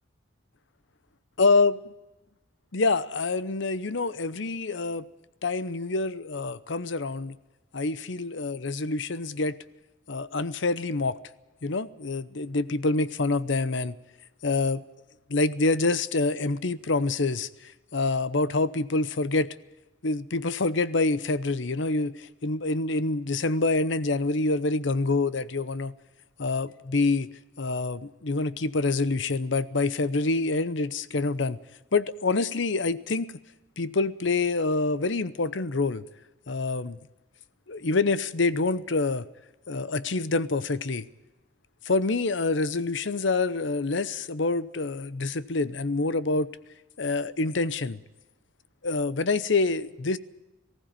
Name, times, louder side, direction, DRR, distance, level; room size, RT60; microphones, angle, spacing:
voice 1, 1.4-1.8 2.7-5.1 5.4-7.4 7.7-9.6 10.1-11.2 11.6-14.0 14.4-14.8 15.3-19.5 20.0-25.9 26.4-27.3 27.6-31.6 31.9-33.3 33.8-36.0 36.5-37.0 37.7-39.3 39.7-41.1 41.8-46.5 47.0-48.0 48.8-50.2, left 3 dB, 65° left, 0.8 m, -26 dB
19.0 x 16.0 x 9.0 m
head